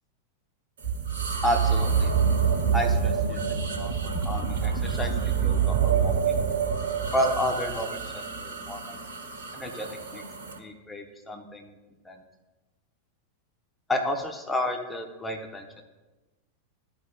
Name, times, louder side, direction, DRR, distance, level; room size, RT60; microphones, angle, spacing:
sound 1, 0.8-10.6, right 6 dB, 65° right, 1.2 m, -27 dB
voice 1, 1.4-2.1 2.7-6.4 7.1-8.9 9.5-10.2 10.6-11.7 12.0-12.2 13.9-15.7, left 1 dB, 10° left, 4 dB, 0.9 m, -31 dB
13.5 x 5.2 x 2.3 m, 1.1 s
figure-of-eight pair, 90°, 0 cm